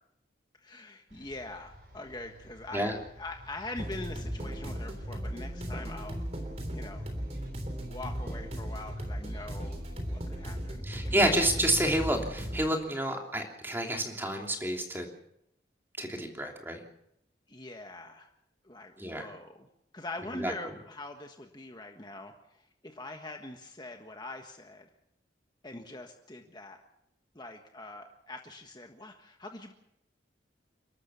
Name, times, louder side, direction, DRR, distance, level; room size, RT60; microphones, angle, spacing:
voice 1, 0.5-6.2 6.7-7.1 7.8-11.3 17.5-18.3 18.6-19.7 19.9-24.9 25.6-26.8 27.3-29.7, left 2 dB, 25° left, 4 dB, 1.4 m, -43 dB
sound 1, 1.1-10.8, equal, 60° right, 6.2 m, -53 dB
sound 2, 3.8-12.7, equal, 35° right, 3.6 m, -37 dB
voice 2, 10.8-15.1 16.0-16.8 19.0-19.3 20.4-20.5, right 1 dB, 10° right, 2 dB, 3.0 m, -29 dB
29.5 x 13.0 x 7.0 m, 0.78 s
head